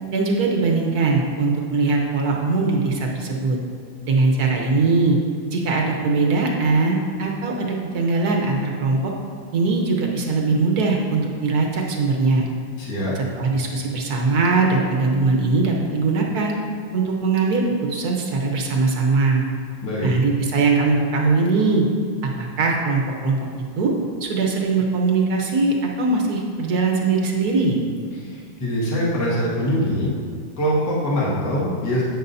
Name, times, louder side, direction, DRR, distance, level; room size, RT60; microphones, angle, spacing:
voice 1, 0.1-3.6 4.0-5.2 5.5-9.1 9.5-12.4 13.1-16.5 16.9-17.6 17.9-19.4 20.0-21.8 22.4-23.5 23.8-23.9 24.2-27.8, right 3 dB, 55° right, 0 dB, 1.3 m, -21 dB
voice 2, 12.8-13.1 19.8-20.2 28.2-30.1 30.6-32.0, equal, 50° left, -7 dB, 2.5 m, -23 dB
11.0 x 8.8 x 2.7 m, 2.1 s
omnidirectional pair, 2.4 m